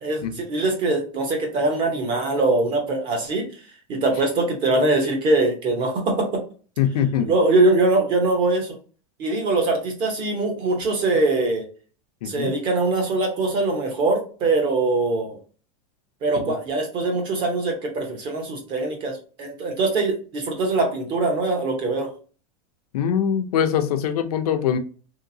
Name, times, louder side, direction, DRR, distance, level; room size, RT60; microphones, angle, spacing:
voice 1, 0.0-3.6 3.9-6.4 7.2-8.8 9.2-11.7 12.2-15.4 16.2-22.1, right 2 dB, 25° right, 0.7 m, -22 dB
voice 2, 6.8-7.3 12.2-12.5 16.5-16.6 22.9-24.8, left 8 dB, 75° left, 0.6 m, -22 dB
3.1 x 2.8 x 2.6 m
supercardioid pair, 175°, 20 cm